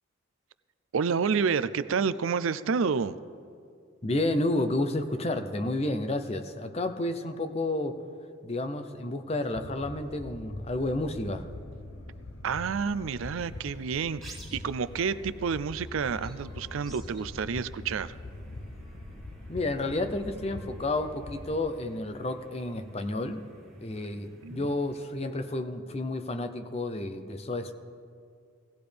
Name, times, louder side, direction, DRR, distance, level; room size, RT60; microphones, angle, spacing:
voice 1, 0.9-3.2 12.4-18.1 24.4-24.7, right 6 dB, 75° right, 15 dB, 0.4 m, -29 dB
voice 2, 4.0-8.0 8.4-11.5 19.5-23.4 23.8-27.7, left 2 dB, 30° left, 8 dB, 0.6 m, -31 dB
sound 1, 9.5-21.6, left 2 dB, 90° left, 0.9 m, -43 dB
sound 2, 12.7-25.3, right 1 dB, ahead, 1.7 m, -55 dB
17.5 x 16.0 x 3.4 m, 2.3 s
head